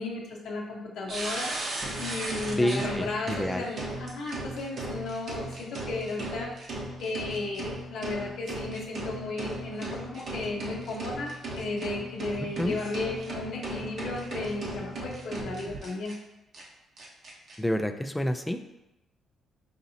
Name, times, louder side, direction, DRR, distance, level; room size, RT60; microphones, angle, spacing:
voice 1, 0.0-1.5 2.0-6.5 7.0-16.1, left 3 dB, 80° left, -2 dB, 0.6 m, -34 dB
sound 1, 1.1-16.1 16.5-16.6 17.0-17.5, right 2 dB, 55° right, 0.9 m, -36 dB
voice 2, 2.6-3.7 12.4-12.8 17.6-18.7, equal, 10° left, 7 dB, 0.3 m, -28 dB
5.0 x 2.8 x 2.7 m, 0.94 s
cardioid pair, 90°, 0 cm